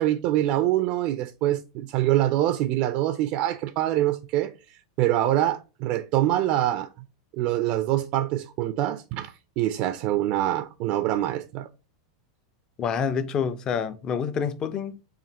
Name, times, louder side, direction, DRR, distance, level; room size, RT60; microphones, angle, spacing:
voice 1, 0.0-4.5 5.0-6.9 7.4-11.7, right 13 dB, 50° right, 0.3 m, -25 dB
voice 2, 12.8-15.1, left 6 dB, 30° left, 0.5 m, -27 dB
4.9 x 2.6 x 2.9 m
hypercardioid pair, 100°, 2 cm